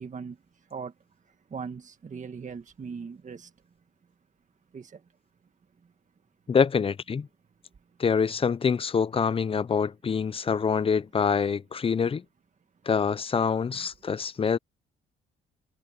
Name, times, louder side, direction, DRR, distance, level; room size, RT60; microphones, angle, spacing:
voice 1, 0.0-3.7 4.7-5.1 5.8-5.9 7.7-8.0 9.8-9.9 12.0-12.1 13.7-13.9, right 5 dB, 40° right, 1.7 m, -41 dB
voice 2, 6.5-7.3 8.0-12.2 12.9-14.6, left 6 dB, 30° left, 0.5 m, -25 dB
cardioid pair, 90°, 20 cm